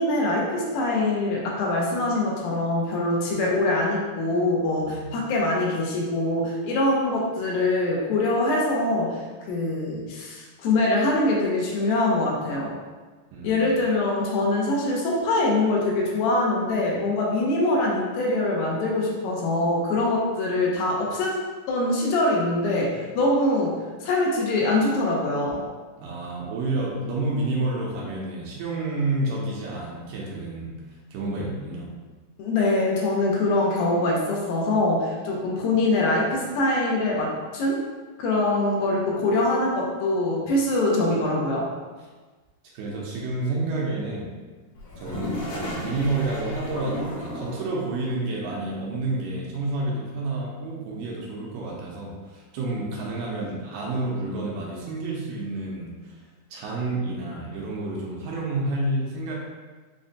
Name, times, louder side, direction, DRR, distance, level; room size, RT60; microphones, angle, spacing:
voice 1, 0.0-9.2 9.5-12.7 13.4-21.4 21.7-25.6 32.4-37.8 38.2-41.7, left 2 dB, 85° left, -2 dB, 2.5 m, -23 dB
voice 2, 13.3-13.6 26.0-30.8 31.1-31.9 42.7-44.3 45.0-56.2 56.5-59.4, right 2 dB, 80° right, -3 dB, 2.1 m, -29 dB
Toilet flush, 44.8-47.8, left 1 dB, 70° left, 1.8 m, -34 dB
6.1 x 2.1 x 2.6 m, 1.3 s
omnidirectional pair, 4.0 m